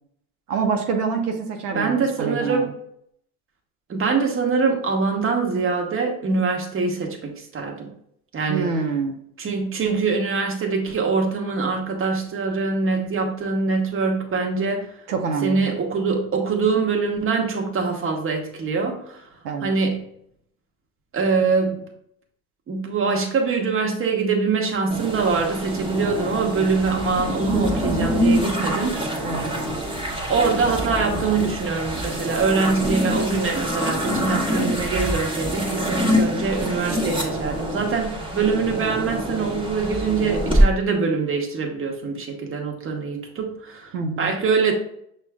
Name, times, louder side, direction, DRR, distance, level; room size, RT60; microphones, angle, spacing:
voice 1, 0.5-1.9 2.2-2.7 8.5-9.2 15.1-15.7 19.4-19.7 29.2-29.5 43.9-44.3, right 5 dB, 85° right, 3 dB, 0.7 m, -26 dB
voice 2, 1.7-2.7 3.9-7.9 8.3-8.7 9.4-14.9 15.4-19.2 19.6-20.0 21.1-21.8 22.7-29.3 30.3-44.7, right 4 dB, 30° right, 2 dB, 1.1 m, -23 dB
sound 1, 24.9-40.6, equal, 10° right, 1.0 m, -25 dB
6.0 x 2.4 x 3.5 m, 0.70 s
hypercardioid pair, 80°, 45 cm